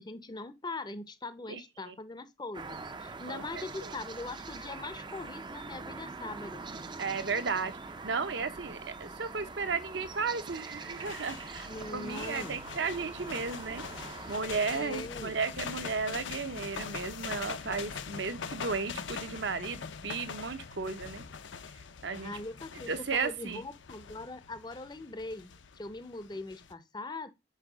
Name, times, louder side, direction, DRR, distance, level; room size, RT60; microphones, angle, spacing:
voice 1, 0.0-6.6 11.7-12.6 14.7-15.3 22.2-27.3, left 2 dB, 20° left, 0.6 m, -41 dB
sound 1, 2.5-14.4, right 4 dB, 20° right, 0.5 m, -43 dB
voice 2, 3.3-3.9 7.0-7.8 8.0-13.8 14.3-21.3 22.0-22.4 22.9-23.6, right 4 dB, 60° right, 0.8 m, -34 dB
sound 2, 10.8-26.7, left 6 dB, 70° left, 0.6 m, -43 dB
5.6 x 4.5 x 6.1 m
head